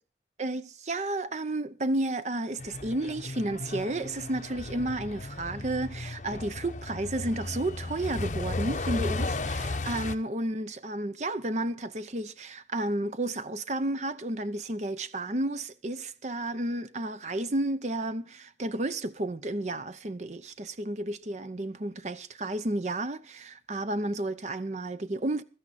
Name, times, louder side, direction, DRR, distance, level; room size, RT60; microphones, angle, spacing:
voice 1, 0.4-25.4, right 1 dB, 40° right, 0.7 m, -32 dB
Truck, 2.6-10.2, left 2 dB, 45° left, 0.8 m, -35 dB
16.0 x 13.0 x 4.2 m
head